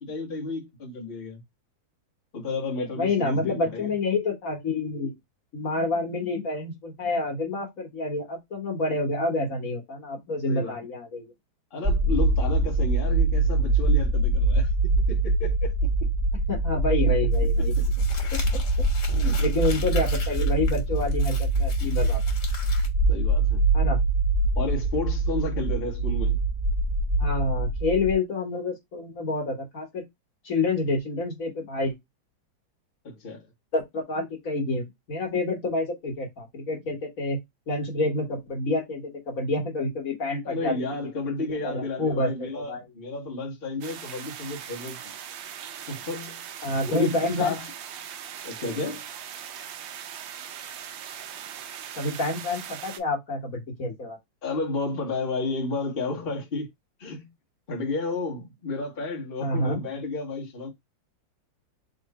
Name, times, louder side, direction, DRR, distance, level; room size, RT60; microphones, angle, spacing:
voice 1, 0.0-1.4 2.3-3.9 10.5-10.8 11.7-15.7 19.1-19.4 23.1-23.6 24.6-26.4 33.0-33.5 40.4-45.1 45.9-46.4 46.9-47.7 48.4-49.0 54.4-56.7 57.0-57.3 57.7-60.7, left 3 dB, 35° left, 1.2 m, -32 dB
voice 2, 3.0-5.1 5.5-11.3 16.5-17.7 18.3-18.6 19.1-22.2 23.7-24.0 27.2-30.1 30.4-31.9 33.7-37.4 37.7-40.7 41.6-42.8 46.6-47.5 52.0-54.2 59.4-59.8, left 2 dB, 50° left, 1.6 m, -28 dB
sound 1, 11.8-28.1, right 2 dB, 25° right, 2.5 m, -24 dB
Crumpling crinkling, 17.3-22.9, left 4 dB, 65° left, 1.9 m, -41 dB
sound 2, 43.8-53.0, right 9 dB, 85° right, 1.5 m, -40 dB
3.8 x 3.2 x 4.1 m
omnidirectional pair, 2.0 m